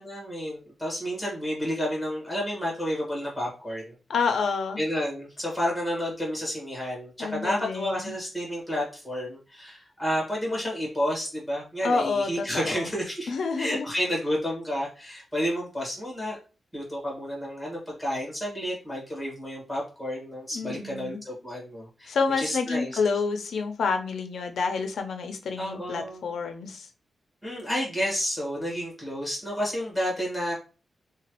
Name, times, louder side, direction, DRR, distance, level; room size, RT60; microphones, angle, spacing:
voice 1, 0.0-3.9 4.8-16.4 16.7-23.0 25.6-26.3 27.4-30.5, equal, ahead, -3 dB, 1.4 m, -31 dB
voice 2, 4.1-4.8 7.2-8.1 11.8-12.9 13.3-13.9 20.5-21.2 22.1-26.9, left 4 dB, 85° left, 6 dB, 0.5 m, -28 dB
3.1 x 2.2 x 2.9 m, 0.34 s
wide cardioid pair, 145°, 0 cm